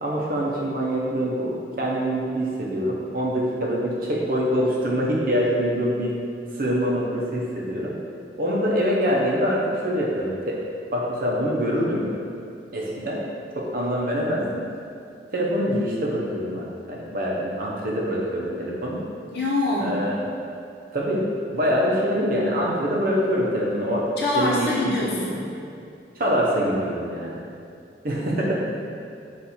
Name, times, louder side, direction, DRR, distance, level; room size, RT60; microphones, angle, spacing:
voice 1, 0.0-6.2 6.6-8.0 8.4-10.6 10.9-12.1 12.7-13.2 13.6-14.6 15.3-19.0 19.8-20.3 20.9-25.0 26.2-27.4 28.0-28.6, equal, 50° right, -3 dB, 0.6 m, -24 dB
voice 2, 19.3-20.0 24.2-25.5, left 2 dB, 60° left, -5 dB, 0.8 m, -24 dB
4.0 x 2.5 x 4.2 m, 2.5 s
head